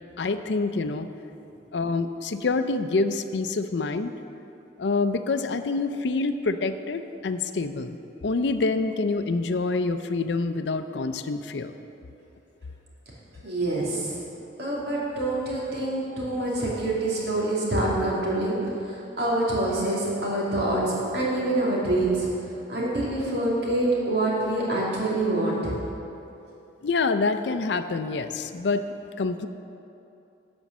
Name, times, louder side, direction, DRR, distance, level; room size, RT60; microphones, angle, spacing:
voice 1, 0.2-1.1 1.7-4.1 4.8-8.0 8.2-11.7 26.8-28.8 29.2-29.5, left 3 dB, 65° left, 9 dB, 0.5 m, -26 dB
voice 2, 13.4-14.2 14.6-18.6 18.8-22.3 22.7-25.8, right 1 dB, 60° right, -5 dB, 2.6 m, -26 dB
11.5 x 5.3 x 7.3 m, 2.8 s
head